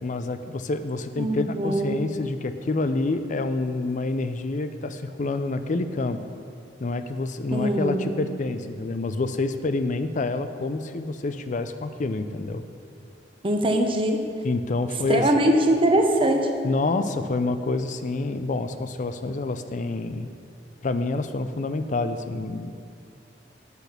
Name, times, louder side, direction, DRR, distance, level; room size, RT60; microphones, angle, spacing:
voice 1, 0.0-6.2 6.8-12.6 14.4-15.3 16.6-20.3 20.8-22.7, left 3 dB, 45° left, 10 dB, 0.5 m, -27 dB
voice 2, 1.2-2.0 7.5-8.2 13.4-14.2 15.1-16.5, right 1 dB, 30° right, 4 dB, 0.8 m, -22 dB
8.2 x 6.2 x 6.7 m, 2.4 s
head